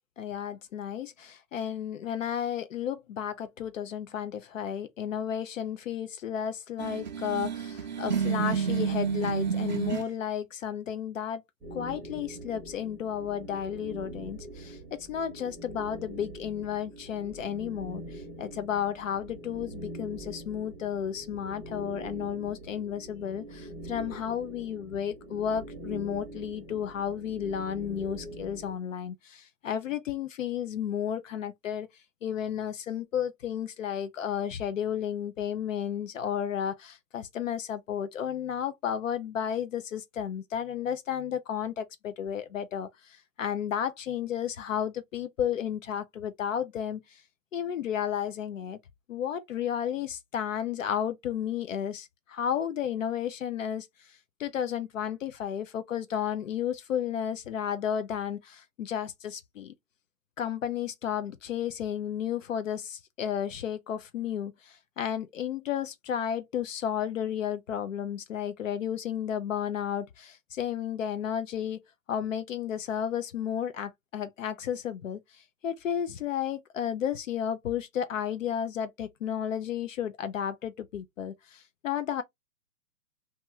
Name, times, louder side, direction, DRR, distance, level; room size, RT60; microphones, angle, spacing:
voice 1, 0.2-11.4 11.7-31.9 32.2-42.9 43.4-47.0 47.5-48.8 49.1-53.9 54.4-59.7 60.4-71.8 72.1-75.2 75.6-82.2, left 9 dB, 50° left, 0.5 m, -33 dB
sound 1, 6.8-10.1, right 6 dB, 30° right, 0.4 m, -29 dB
sound 2, 11.6-28.8, right 1 dB, 5° right, 0.8 m, -43 dB
2.8 x 2.3 x 2.9 m
hypercardioid pair, 145°, 50 cm